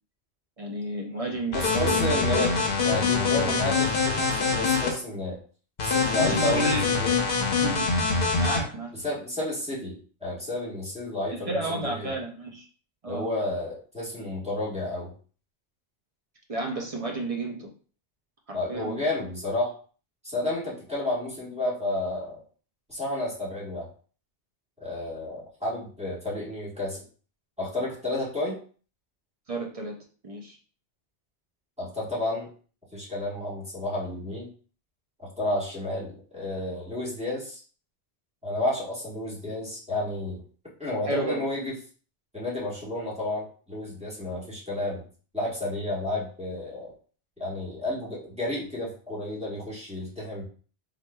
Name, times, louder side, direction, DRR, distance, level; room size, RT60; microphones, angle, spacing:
voice 1, 0.6-3.1 3.4-3.6 6.2-6.9 7.6-7.9 8.4-8.9 11.5-12.7 13.0-13.3 16.5-17.7 18.5-19.0 29.5-30.0 30.2-30.6 41.1-41.4, right 2 dB, 40° right, 0 dB, 0.6 m, -31 dB
sound 1, 1.5-4.9 5.8-8.6, left 4 dB, 60° left, 0.9 m, -24 dB
voice 2, 1.5-2.5 2.8-5.4 5.8-7.1 9.0-12.1 13.1-15.1 18.5-19.7 20.2-22.4 22.9-23.9 24.8-27.0 27.6-28.6 31.8-32.5 32.9-34.5 35.2-37.6 38.4-40.4 40.8-41.7 42.3-45.0 45.3-46.9 47.4-50.4, left 2 dB, 5° right, -6 dB, 1.3 m, -31 dB
3.7 x 3.1 x 2.2 m, 0.42 s
omnidirectional pair, 1.1 m